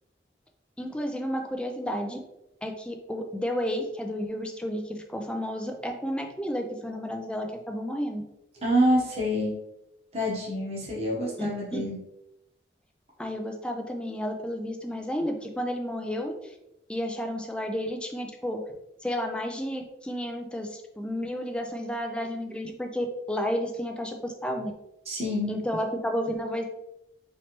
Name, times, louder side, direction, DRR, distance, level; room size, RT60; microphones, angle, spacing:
voice 1, 0.8-2.2 2.6-8.2 11.4-11.9 13.2-16.5 16.9-18.6 19.0-24.7 25.5-26.6, equal, 5° left, 4 dB, 0.4 m, -32 dB
voice 2, 8.6-9.5 10.1-12.0 25.1-25.6, equal, 35° right, -4 dB, 1.0 m, -26 dB
4.3 x 3.1 x 2.9 m, 0.88 s
head